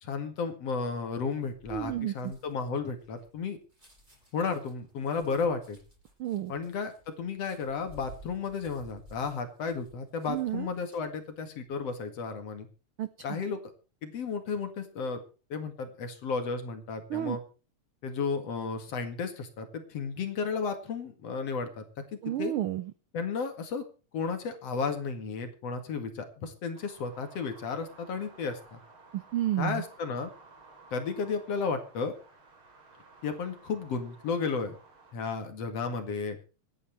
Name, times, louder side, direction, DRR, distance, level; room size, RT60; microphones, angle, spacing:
voice 1, 0.0-3.6 4.3-5.8 6.5-12.7 13.2-13.6 14.0-15.2 15.5-17.4 18.0-21.8 22.1-22.5 23.1-23.8 24.1-28.8 29.6-30.3 30.9-32.1 33.2-34.8 35.1-36.4, left 5 dB, 60° left, 7 dB, 3.0 m, -33 dB
sound 1, 1.1-11.3 11.7-12.0, right 1 dB, 15° right, 7.9 m, -55 dB
voice 2, 1.7-2.3 6.2-6.5 10.3-10.7 13.0-13.1 17.1-17.4 22.2-22.9 29.1-29.8, right 13 dB, 75° right, 13 dB, 1.2 m, -31 dB
sound 2, 26.7-35.1, right 3 dB, 45° right, 4.0 m, -55 dB
25.5 x 9.9 x 3.2 m, 0.35 s
omnidirectional pair, 3.3 m